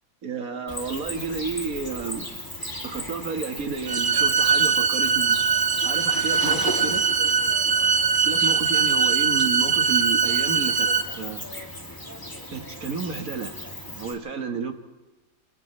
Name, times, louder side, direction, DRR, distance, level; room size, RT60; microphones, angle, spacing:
voice 1, 0.2-2.3 2.8-5.4 5.8-7.1 8.3-10.9 11.2-11.4 12.5-13.5 13.9-14.7, right 5 dB, 70° right, 6 dB, 2.1 m, -31 dB
Cricket, 0.7-14.1, left 1 dB, 15° left, 2.6 m, -36 dB
sound 1, 3.9-11.0, right 6 dB, 40° right, 0.9 m, -21 dB
29.0 x 28.0 x 3.3 m, 1.1 s
omnidirectional pair, 1.5 m